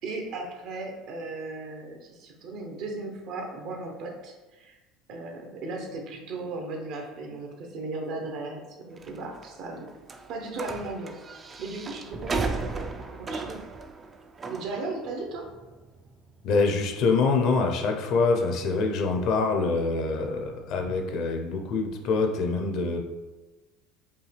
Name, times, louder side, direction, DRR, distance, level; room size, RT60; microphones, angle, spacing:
voice 1, 0.0-4.8 5.1-9.9 10.3-11.2 11.6-13.6 14.5-15.5, right 3 dB, 60° right, 2 dB, 0.9 m, -36 dB
sound 1, 9.0-20.9, right 3 dB, 25° right, 0.4 m, -38 dB
voice 2, 16.4-23.0, left 4 dB, 60° left, 3 dB, 0.7 m, -25 dB
5.3 x 2.3 x 3.3 m, 1.1 s
supercardioid pair, 110°, 0 cm